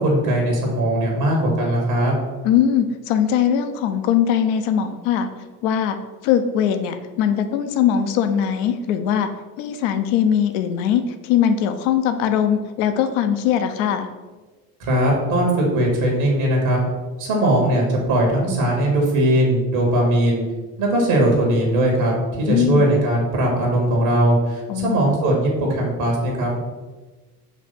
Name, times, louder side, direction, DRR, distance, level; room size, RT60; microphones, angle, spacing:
voice 1, 0.0-2.1 14.9-16.8 17.2-20.4 20.8-26.5, right 1 dB, 65° right, 0 dB, 1.9 m, -19 dB
voice 2, 2.4-5.3 5.6-6.0 6.2-9.3 9.6-14.1 22.5-22.9 24.7-25.2, left 9 dB, 60° left, 8 dB, 0.7 m, -20 dB
5.2 x 3.3 x 5.5 m, 1.2 s
figure-of-eight pair, 60°, 46 cm